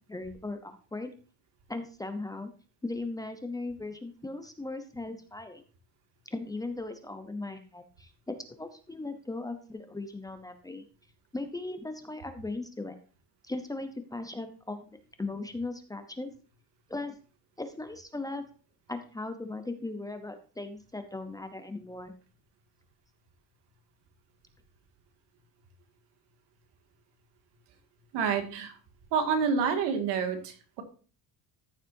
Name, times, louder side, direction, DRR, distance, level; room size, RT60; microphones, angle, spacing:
voice 1, 0.1-1.1 1.7-2.5 2.8-5.6 6.3-10.8 11.3-12.9 13.4-16.3 16.9-17.2 17.6-18.4 18.9-22.1, left 2 dB, 10° left, 8 dB, 0.6 m, -38 dB
voice 2, 28.1-28.7 29.1-30.8, right 6 dB, 85° right, 6 dB, 2.1 m, -28 dB
14.0 x 7.3 x 2.6 m, 0.37 s
cardioid pair, 170°, 41 cm